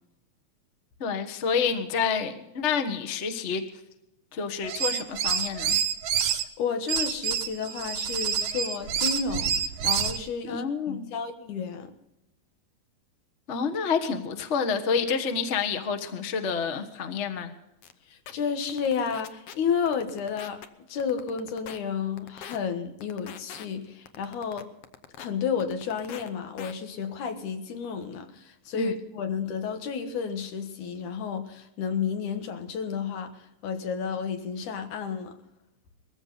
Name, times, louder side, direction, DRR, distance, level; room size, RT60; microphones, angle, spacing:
voice 1, 1.0-3.6 4.3-5.8 10.5-11.0 13.5-17.5 28.7-29.0, left 6 dB, 45° left, 0.9 m, -28 dB
sound 1, 4.6-6.4 6.9-10.2, right 7 dB, 60° right, 1.5 m, -27 dB
voice 2, 6.6-9.5 9.8-11.9 18.1-20.6 20.9-24.7 25.2-35.4, left 6 dB, 85° left, 2.9 m, -31 dB
sound 2, 17.8-17.9 18.3-18.4 18.7-19.5 19.9-20.7 21.0-21.8 22.2-22.6 23.0-23.7 24.1-25.3 25.6-26.3 26.6-26.7, left 9 dB, 65° left, 1.6 m, -42 dB
20.5 x 15.0 x 4.1 m
omnidirectional pair, 3.4 m